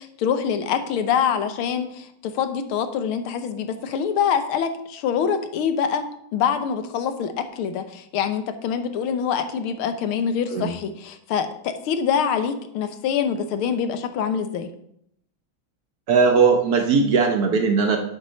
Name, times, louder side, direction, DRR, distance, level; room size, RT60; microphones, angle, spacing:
voice 1, 0.0-6.0 6.3-14.7, left 7 dB, 85° left, 9 dB, 1.7 m, -25 dB
voice 2, 16.1-18.0, right 5 dB, 65° right, 4 dB, 1.0 m, -18 dB
7.7 x 4.4 x 6.3 m, 0.72 s
omnidirectional pair, 2.3 m